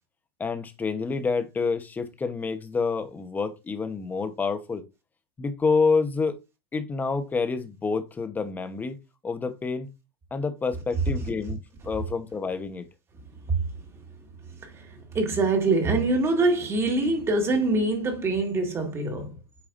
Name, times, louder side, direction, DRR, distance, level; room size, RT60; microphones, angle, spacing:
voice 1, 0.4-4.8 5.4-6.4 6.7-9.0 9.2-9.9 10.3-11.6 11.8-12.8, left 4 dB, 15° left, 1.0 m, -28 dB
voice 2, 13.3-13.8 14.4-19.4, right 2 dB, 20° right, 1.9 m, -25 dB
8.6 x 4.7 x 2.6 m
hypercardioid pair, 135°, 14 cm